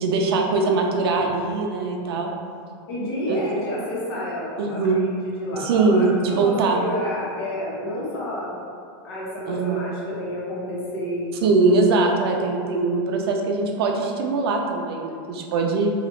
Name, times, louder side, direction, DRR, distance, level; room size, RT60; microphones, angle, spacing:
voice 1, 0.0-2.3 3.3-3.4 4.6-5.0 5.5-6.8 9.5-9.8 11.4-15.9, right 3 dB, 80° right, 1 dB, 0.4 m, -21 dB
voice 2, 2.9-8.5 9.0-11.4, equal, 75° left, -6 dB, 1.0 m, -30 dB
2.9 x 2.4 x 3.0 m, 2.3 s
supercardioid pair, 165°, 13 cm